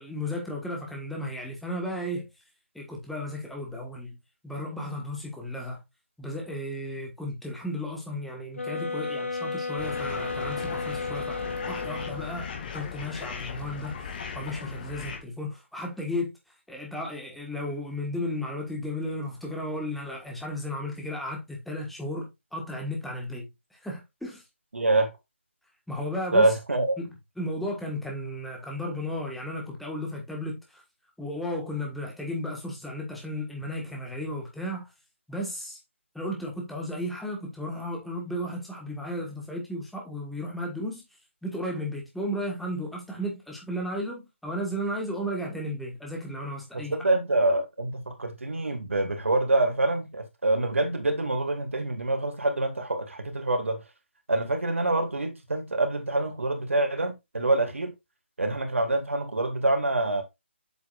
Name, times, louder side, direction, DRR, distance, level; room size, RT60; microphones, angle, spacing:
voice 1, 0.0-2.3 2.7-4.2 4.4-5.8 6.2-16.4 16.7-24.4 25.9-26.5 27.0-30.8 31.2-34.9 35.3-35.8 36.1-41.0 41.4-47.0, left 1 dB, ahead, 1.6 m, -34 dB
sound 1, 8.5-12.4, left 4 dB, 80° left, 1.8 m, -33 dB
sound 2, 9.8-15.2, left 6 dB, 40° left, 2.3 m, -37 dB
voice 2, 24.7-25.1 26.3-27.0 46.7-53.8 54.3-57.9 58.4-60.2, right 2 dB, 80° right, 2.3 m, -26 dB
8.0 x 6.9 x 2.5 m
figure-of-eight pair, 160°, 7 cm